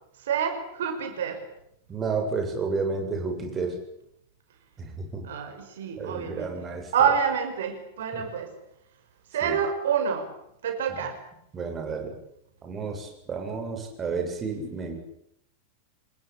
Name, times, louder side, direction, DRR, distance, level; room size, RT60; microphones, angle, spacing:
voice 1, 0.2-1.4 5.2-6.5 6.9-8.5 9.3-10.3 10.6-11.2, right 7 dB, 60° right, 7 dB, 5.9 m, -27 dB
voice 2, 1.9-3.8 4.8-5.3 6.0-6.9 8.1-8.2 9.4-9.6 11.5-12.2 12.6-15.0, right 4 dB, 20° right, 4 dB, 7.3 m, -31 dB
27.5 x 21.0 x 8.7 m, 0.74 s
figure-of-eight pair, 90°, 0 cm